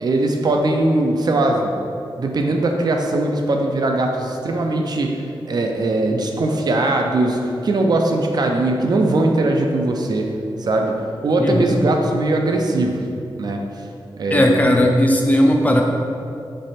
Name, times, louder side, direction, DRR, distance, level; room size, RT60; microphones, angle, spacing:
voice 1, 0.0-1.7 2.2-10.3 10.6-11.0 11.2-13.0 13.4-13.6 14.2-14.7, right 2 dB, 50° right, 2 dB, 0.4 m, -20 dB
voice 2, 11.4-11.8 14.3-15.8, left 1 dB, 20° left, 1 dB, 0.4 m, -16 dB
3.2 x 3.2 x 4.1 m, 2.6 s
wide cardioid pair, 165°, 9 cm